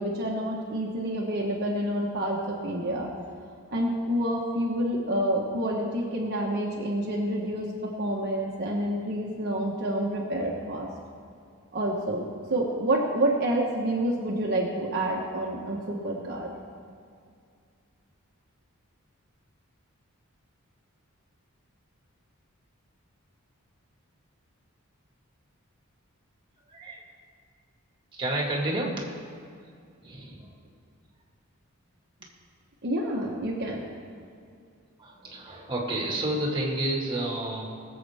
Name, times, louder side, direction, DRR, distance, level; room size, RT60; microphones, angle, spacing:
voice 1, 0.0-3.1 3.7-10.9 11.7-16.5 32.8-33.8, right 1 dB, 50° right, -3 dB, 1.3 m, -28 dB
voice 2, 26.7-27.0 28.1-29.1 30.0-30.5 35.0-37.6, right 1 dB, 25° right, -2 dB, 2.1 m, -30 dB
21.5 x 7.7 x 3.6 m, 2.3 s
head